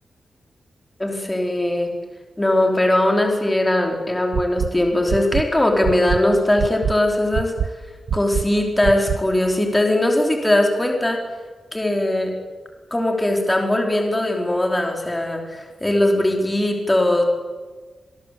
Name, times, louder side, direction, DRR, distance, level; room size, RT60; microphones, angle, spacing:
voice 1, 1.0-1.9 2.4-7.5 8.1-11.2 11.7-12.3 12.9-17.2, left 1 dB, 10° left, 2 dB, 4.5 m, -20 dB
sound 1, 4.3-4.7 5.1-5.4 5.8-6.2 6.6-6.9 7.3-7.7 8.1-8.4 8.8-9.2, right 8 dB, 85° right, 1.1 m, -23 dB
27.5 x 22.0 x 8.5 m, 1.4 s
wide cardioid pair, 170°, 0 cm